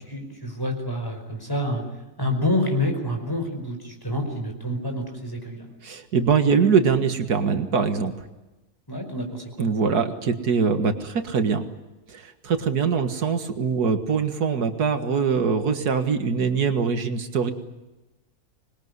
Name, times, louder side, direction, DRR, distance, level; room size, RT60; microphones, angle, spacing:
voice 1, 0.1-1.8 2.2-5.7 8.9-9.7, left 1 dB, 15° left, 3 dB, 5.0 m, -28 dB
voice 2, 5.8-8.1 9.6-11.7 12.1-17.5, right 5 dB, 85° right, 8 dB, 2.2 m, -23 dB
26.0 x 21.0 x 9.6 m, 1.0 s
omnidirectional pair, 1.6 m